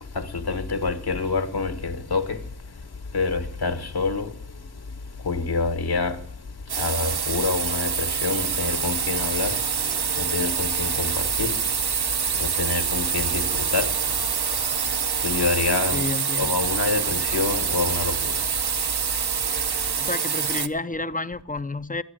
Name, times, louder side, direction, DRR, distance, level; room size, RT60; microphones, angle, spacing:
voice 1, 0.1-2.4 3.1-4.3 5.2-6.2 6.8-9.6 10.2-11.5 12.4-13.9 15.2-16.1 16.4-18.3, left 4 dB, 70° left, 1.5 m, -26 dB
sound 1, 6.7-20.7, right 7 dB, 75° right, 1.0 m, -26 dB
voice 2, 15.9-16.6 20.0-22.0, left 3 dB, 20° left, 0.5 m, -30 dB
13.0 x 10.5 x 8.8 m
wide cardioid pair, 95°, 40 cm